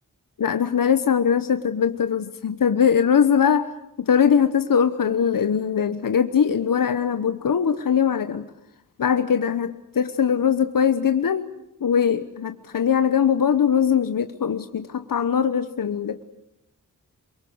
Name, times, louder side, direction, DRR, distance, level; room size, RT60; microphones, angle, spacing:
voice 1, 0.4-3.7 4.0-8.5 9.0-11.5 11.8-16.2, left 7 dB, 80° left, 9 dB, 1.2 m, -21 dB
27.5 x 23.5 x 8.1 m, 0.84 s
wide cardioid pair, 115°, 33 cm